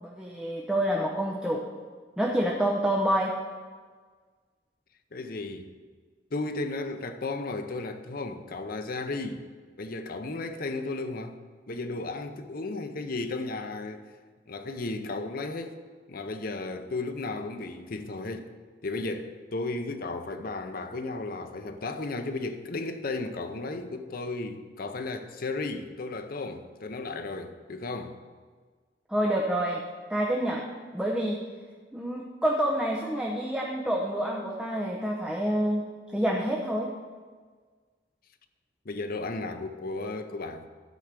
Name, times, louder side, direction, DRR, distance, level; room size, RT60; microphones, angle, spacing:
voice 1, 0.0-1.6 2.2-3.3 29.1-29.8 30.1-30.6 30.9-31.4 31.9-35.8 36.1-36.9, right 1 dB, 5° right, 0.8 m, -27 dB
voice 2, 5.1-5.7 6.3-9.4 9.8-11.4 11.7-14.0 14.5-15.8 16.1-18.5 18.8-28.2 38.8-40.7, left 3 dB, 55° left, 0.8 m, -34 dB
12.0 x 4.7 x 6.7 m
head